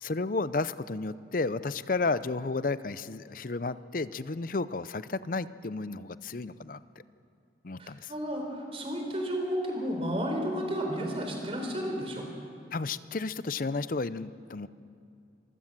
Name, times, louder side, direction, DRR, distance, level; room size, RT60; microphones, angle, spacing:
voice 1, 0.0-6.8 7.6-8.1 12.7-14.7, left 3 dB, 50° left, 15 dB, 0.6 m, -32 dB
voice 2, 7.8-12.2, equal, 30° right, 2 dB, 4.0 m, -32 dB
26.5 x 15.5 x 7.5 m, 2.5 s
head